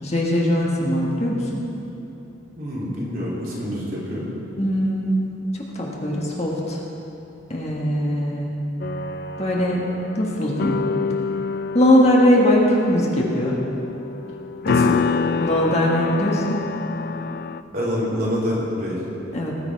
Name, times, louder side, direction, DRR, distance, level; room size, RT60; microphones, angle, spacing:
voice 1, 0.0-1.6 4.6-5.3 5.7-6.8 7.5-8.5 9.4-10.8 11.7-13.6 15.4-16.6 19.3-19.5, equal, 35° left, -3 dB, 1.6 m, -20 dB
voice 2, 2.6-4.3 14.7-15.0 17.7-19.0, equal, 50° right, -6 dB, 3.1 m, -26 dB
sound 1, 8.8-17.6, left 5 dB, 50° left, 0.4 m, -27 dB
19.5 x 7.1 x 4.7 m, 2.9 s
head